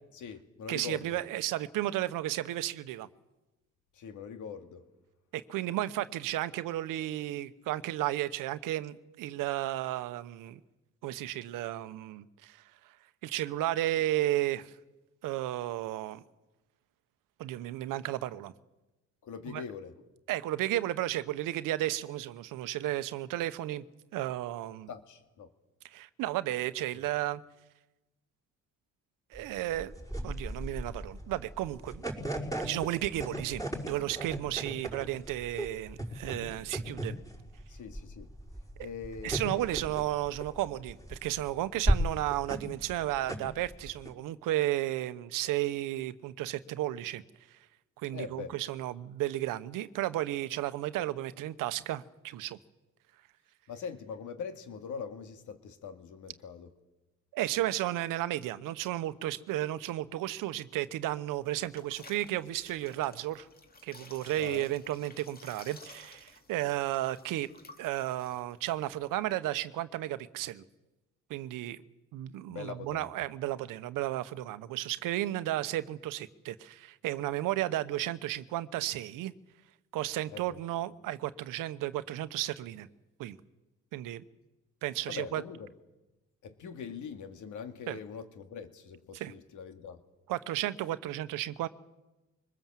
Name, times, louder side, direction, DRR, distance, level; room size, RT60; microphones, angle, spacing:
voice 1, 0.1-1.2 3.9-4.8 19.2-19.9 24.9-25.5 37.7-38.3 38.8-39.8 48.1-48.6 53.7-56.7 64.4-64.7 72.5-73.1 80.3-80.6 85.1-85.7 86.4-90.0, left 6 dB, 70° left, 7 dB, 2.3 m, -42 dB
voice 2, 0.7-3.1 5.3-10.6 11.0-12.9 13.2-14.7 15.2-16.2 17.4-18.5 19.5-19.6 20.3-23.8 24.1-24.9 25.9-27.4 29.3-29.9 30.2-32.0 32.6-37.1 38.8-38.9 39.2-47.2 48.0-52.6 57.3-63.5 63.8-67.5 67.8-70.6 71.3-71.8 72.1-79.3 79.9-82.9 83.2-83.4 83.9-84.2 84.8-85.4 87.9-88.0 89.1-89.3 90.3-91.7, right 14 dB, 85° right, 14 dB, 1.0 m, -33 dB
sound 1, 29.3-44.1, right 1 dB, 10° left, 5.2 m, -35 dB
sound 2, 61.3-69.4, left 3 dB, 30° left, 2.3 m, -55 dB
23.0 x 20.5 x 7.5 m, 1.1 s
cardioid pair, 95°, 32 cm